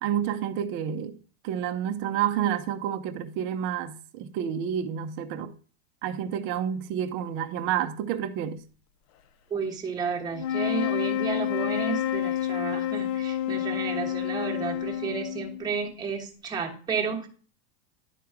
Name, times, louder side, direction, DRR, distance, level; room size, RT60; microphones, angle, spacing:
voice 1, 0.0-1.2 1.4-5.5 6.0-8.6, right 9 dB, 40° right, 0.7 m, -29 dB
voice 2, 9.5-17.3, right 5 dB, 15° right, 1.2 m, -32 dB
sound 1, 10.3-15.8, left 11 dB, 40° left, 0.5 m, -29 dB
11.0 x 4.6 x 3.7 m
supercardioid pair, 155°, 31 cm